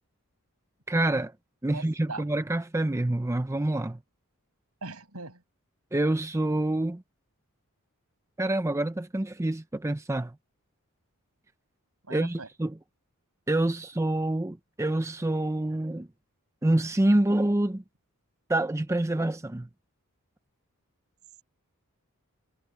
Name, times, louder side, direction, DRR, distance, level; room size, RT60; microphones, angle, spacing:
voice 1, 0.9-1.3 1.6-4.0 5.9-7.0 8.4-10.3 12.1-12.7 13.5-16.1 16.6-17.8 18.5-19.7, right 1 dB, 15° right, 0.5 m, -27 dB
voice 2, 1.7-2.3 4.8-5.4 12.0-12.5, right 3 dB, 75° right, 7.1 m, -40 dB
head